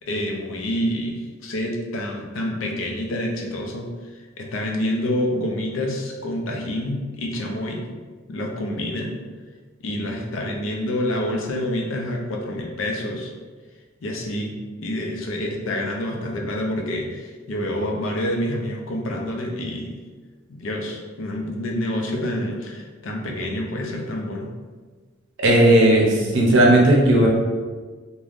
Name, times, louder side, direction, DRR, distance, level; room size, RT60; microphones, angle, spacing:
voice 1, 0.0-3.9 4.4-7.9 8.3-9.1 9.8-13.3 14.0-20.0 20.5-24.5, left 1 dB, 70° left, 1 dB, 0.5 m, -27 dB
voice 2, 25.4-27.3, right 1 dB, 60° right, -2 dB, 0.7 m, -15 dB
3.3 x 2.2 x 2.5 m, 1.4 s
head